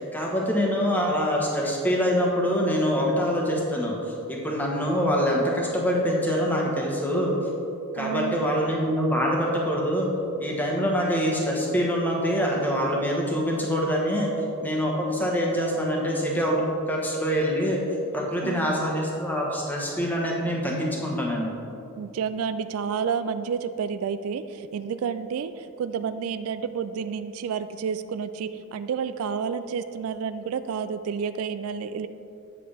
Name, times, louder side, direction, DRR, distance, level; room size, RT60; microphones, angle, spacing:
voice 1, 0.1-7.3 7.9-10.1 10.4-14.3 14.6-17.8 18.1-21.5, equal, 10° left, -2 dB, 1.2 m, -25 dB
voice 2, 8.0-8.5 18.4-18.7 22.0-32.1, right 6 dB, 80° right, 11 dB, 0.3 m, -30 dB
8.5 x 7.6 x 3.4 m, 2.8 s
head